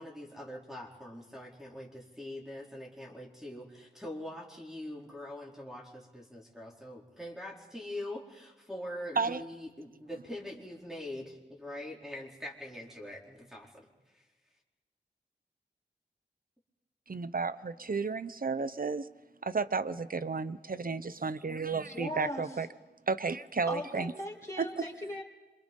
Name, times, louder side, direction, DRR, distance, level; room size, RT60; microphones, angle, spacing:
voice 1, 0.0-13.9 14.1-14.2, left 1 dB, ahead, -2 dB, 4.5 m, -43 dB
voice 2, 17.1-19.1 19.4-22.7 23.1-24.1 24.6-24.7, right 4 dB, 50° right, 14 dB, 0.9 m, -32 dB
voice 3, 21.7-22.5 23.7-25.2, left 1 dB, 15° left, -3 dB, 5.4 m, -38 dB
27.0 x 25.0 x 5.5 m, 1.2 s
wide cardioid pair, 75°, 19 cm